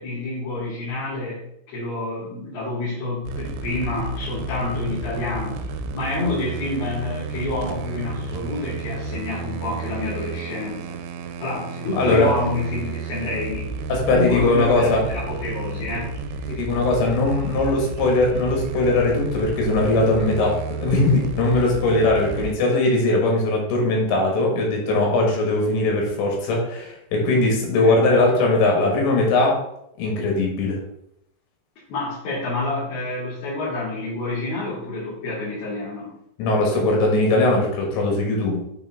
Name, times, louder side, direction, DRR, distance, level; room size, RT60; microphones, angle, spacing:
voice 1, 0.0-5.6 5.9-11.0 11.4-13.8 14.1-16.1 27.6-28.0 31.9-36.1, left 2 dB, 60° left, -12 dB, 4.1 m, -28 dB
sound 1, 3.3-22.5, right 4 dB, 85° right, 2.9 m, -32 dB
voice 2, 11.9-12.3 13.9-15.0 16.5-29.6 30.0-30.8 36.4-38.6, left 2 dB, 80° left, 0 dB, 3.8 m, -20 dB
8.6 x 3.6 x 3.4 m, 0.78 s
omnidirectional pair, 5.1 m